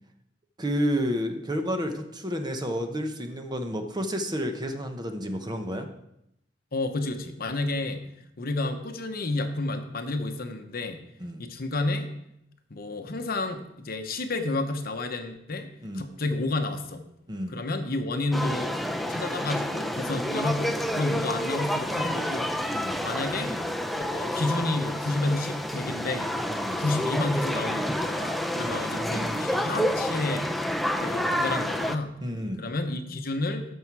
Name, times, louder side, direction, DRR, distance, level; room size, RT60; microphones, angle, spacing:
voice 1, 0.6-5.9 11.2-11.4 15.8-16.1 17.3-17.5 22.7-23.0 26.5-26.8 28.6-29.4 32.2-32.6, equal, 25° right, 5 dB, 0.9 m, -31 dB
voice 2, 6.7-8.0 8.4-11.0 11.4-12.1 12.7-15.7 15.9-17.1 17.5-18.8 19.1-22.5 23.0-23.5 24.0-26.3 26.8-30.5 31.0-32.1 32.6-33.7, left 2 dB, 55° left, 7 dB, 0.9 m, -30 dB
sound 1, 18.3-32.0, equal, ahead, 0.5 m, -29 dB
13.0 x 5.6 x 4.7 m, 0.80 s
head